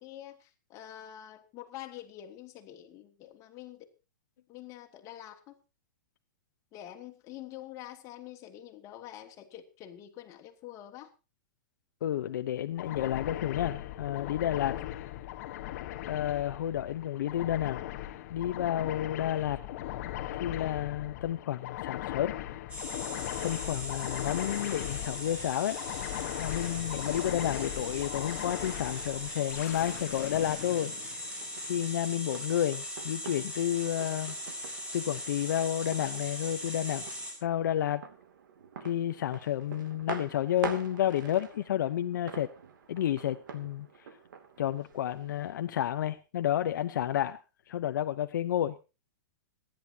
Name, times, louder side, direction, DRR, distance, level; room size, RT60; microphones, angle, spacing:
voice 1, 0.0-3.9 4.5-5.5 6.7-11.1 12.3-12.4 41.2-41.4, left 12 dB, 30° left, 4 dB, 2.4 m, -46 dB
voice 2, 12.0-14.8 16.1-17.8 18.3-19.6 20.4-22.3 23.4-25.8 26.4-30.9 31.7-34.3 34.9-37.0 37.4-38.0 38.8-42.5 42.9-43.9 44.6-47.4 47.7-48.8, left 11 dB, 70° left, 8 dB, 0.9 m, -31 dB
sound 1, 12.8-31.6, left 14 dB, 50° left, 1.3 m, -39 dB
sound 2, 22.7-37.3, left 1 dB, 10° right, 6.3 m, -40 dB
sound 3, 30.7-45.6, right 6 dB, 75° right, 2.7 m, -46 dB
26.0 x 10.5 x 2.9 m, 0.30 s
hypercardioid pair, 145°, 10 cm